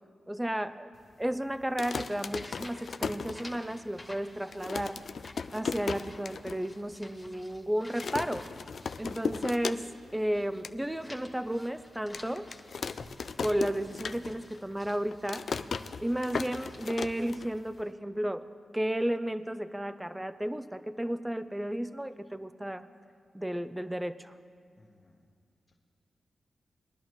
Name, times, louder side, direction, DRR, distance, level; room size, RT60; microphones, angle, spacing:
voice 1, 0.3-0.9 1.2-5.0 5.5-8.5 9.0-9.9 10.1-12.5 13.4-15.5 16.0-18.5 18.7-22.9 23.3-24.3, right 1 dB, 10° right, 12 dB, 0.5 m, -33 dB
sound 1, 1.6-3.9 4.2-4.3 4.5-6.6 6.9-7.0 7.2-7.6 8.0-10.1 10.4-10.8 11.3-11.4 12.1-14.6 14.9-17.8, left 5 dB, 65° left, 0.4 m, -37 dB
sound 2, 1.9-10.6 10.9-17.9, left 1 dB, 15° left, 1.6 m, -52 dB
voice 2, 24.8-25.2, left 2 dB, 40° left, -4 dB, 1.3 m, -62 dB
21.0 x 11.0 x 3.1 m, 2.2 s
cardioid pair, 65°, 0 cm